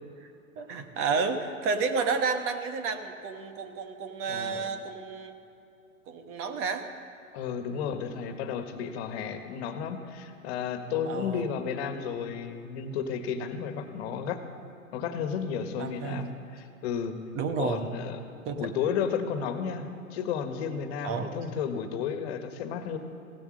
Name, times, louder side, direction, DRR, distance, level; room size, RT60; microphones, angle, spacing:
voice 1, 0.6-5.3 6.1-6.9 11.0-11.4 15.8-16.3 17.3-17.9 18.4-18.6 21.0-21.3, right 5 dB, 30° right, 8 dB, 1.2 m, -31 dB
voice 2, 4.3-4.6 7.3-14.4 14.9-17.2 17.6-18.2 18.5-23.0, left 7 dB, 50° left, 7 dB, 1.6 m, -33 dB
16.0 x 12.5 x 6.4 m, 2.8 s
hypercardioid pair, 110°, 41 cm